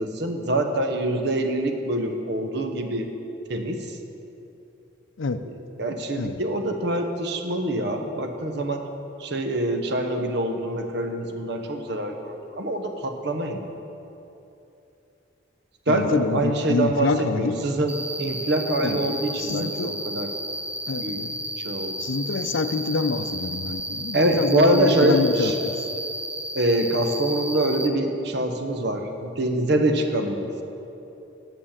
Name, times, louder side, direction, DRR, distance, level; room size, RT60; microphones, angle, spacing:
voice 1, 0.0-3.1 3.5-4.0 5.4-8.8 9.2-13.7 15.9-20.3 21.0-21.2 21.6-22.1 24.1-25.5 26.5-30.5, right 1 dB, 55° right, 5 dB, 0.9 m, -25 dB
voice 2, 15.9-17.7 18.8-19.9 20.9-21.3 22.0-25.7, left 4 dB, 75° left, 10 dB, 0.5 m, -27 dB
Cricket, 17.9-27.9, right 1 dB, 10° right, 0.4 m, -33 dB
8.9 x 7.3 x 7.3 m, 2.9 s
head